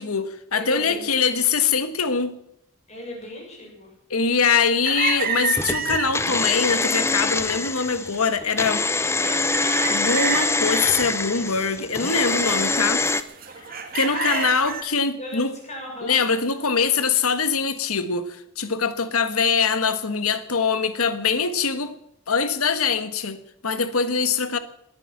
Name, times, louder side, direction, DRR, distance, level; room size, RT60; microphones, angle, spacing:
voice 1, 0.0-2.4 4.1-8.8 9.9-13.0 13.7-15.5 16.0-21.9 22.3-24.6, left 5 dB, 90° left, 1.5 m, -23 dB
voice 2, 0.5-1.1 2.9-3.9 14.1-14.5 15.2-16.1, left 1 dB, 30° left, 6.7 m, -35 dB
sound 1, 4.8-6.7 7.2-7.6 8.0-8.8 9.1-14.8, right 6 dB, 40° right, 2.1 m, -30 dB
sound 2, 5.6-13.2, left 3 dB, 10° left, 0.7 m, -24 dB
20.0 x 9.7 x 7.3 m
head